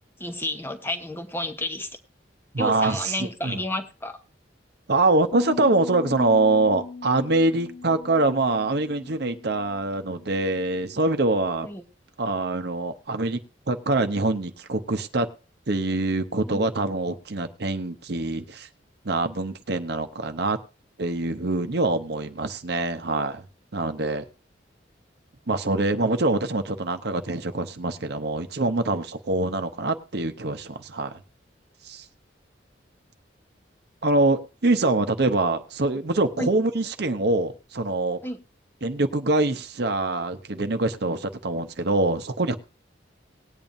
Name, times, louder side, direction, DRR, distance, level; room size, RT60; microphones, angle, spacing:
voice 1, 0.2-1.9 2.6-4.2 11.6-11.8 16.5-16.6 36.4-36.5 38.2-38.4, left 1 dB, 15° left, 7 dB, 1.0 m, -31 dB
voice 2, 2.5-3.6 4.9-11.7 12.2-13.4 13.7-15.3 15.7-18.7 19.0-20.6 21.0-23.4 23.7-24.2 25.5-31.2 31.8-32.0 34.0-38.2 38.8-42.5, right 2 dB, 60° right, 8 dB, 0.8 m, -24 dB
sound 1, 5.3-11.6, left 4 dB, 50° left, 1.1 m, -40 dB
19.5 x 8.9 x 2.6 m, 0.32 s
head